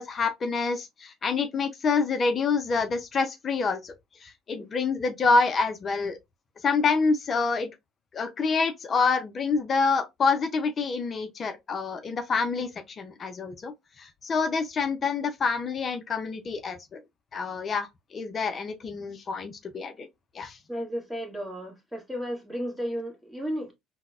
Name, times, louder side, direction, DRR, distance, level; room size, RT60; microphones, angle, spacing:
voice 1, 0.0-3.9 4.2-6.2 6.6-7.7 8.1-12.7 13.0-17.0 17.3-20.1 20.3-20.6, left 4 dB, 40° left, 0.5 m, -27 dB
voice 2, 20.7-23.7, equal, ahead, 1.4 m, -33 dB
3.8 x 2.1 x 2.3 m
hypercardioid pair, 65°, 0 cm